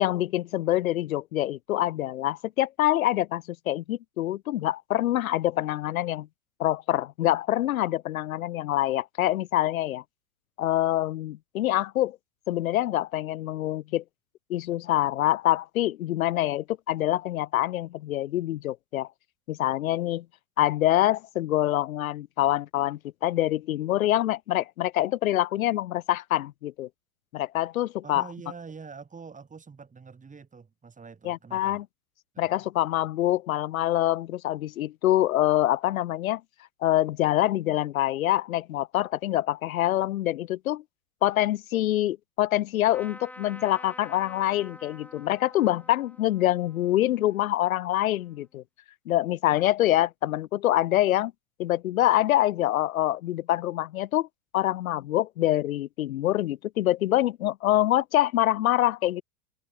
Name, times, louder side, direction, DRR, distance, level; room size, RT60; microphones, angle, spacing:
voice 1, 0.0-6.3 6.6-10.0 10.6-12.2 12.5-14.0 14.5-19.1 19.5-20.2 20.6-26.9 27.3-28.2 31.2-31.8 32.4-36.4 36.8-40.8 41.2-48.6 49.1-51.3 51.6-54.3 54.5-59.2, left 14 dB, 75° left, 2.0 m, -25 dB
voice 2, 28.0-31.8 32.3-32.6, right 5 dB, 20° right, 7.2 m, -45 dB
Trumpet, 42.9-48.4, left 1 dB, 5° left, 4.3 m, -49 dB
hypercardioid pair, 100°, 42 cm